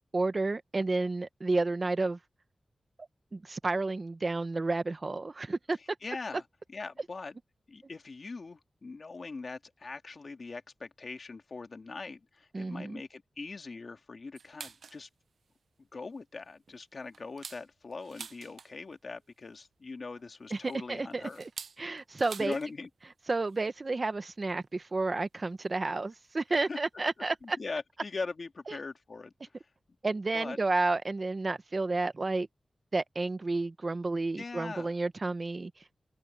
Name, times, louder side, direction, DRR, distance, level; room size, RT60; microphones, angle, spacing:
voice 1, 0.1-2.2 3.3-5.8 12.5-13.0 20.5-21.2 21.8-22.6 23.3-27.6 28.7-28.8 30.0-32.5 32.9-35.8, right 3 dB, 35° right, 1.0 m, -31 dB
voice 2, 6.0-6.4 6.7-7.4 7.7-15.1 15.8-21.4 22.4-22.9 26.7-26.8 27.4-29.6 30.3-30.6 34.4-34.9, left 4 dB, 45° left, 2.0 m, -41 dB
sound 1, 14.4-15.0 15.5-15.6 16.0-16.2 16.7-19.0 20.1-22.7 23.0-23.1 23.4-23.7 24.6-24.7 25.6-25.7 26.6-26.7 27.1-27.2 27.3-27.5, right 5 dB, 75° right, 0.5 m, -47 dB
wide cardioid pair, 155°, 0 cm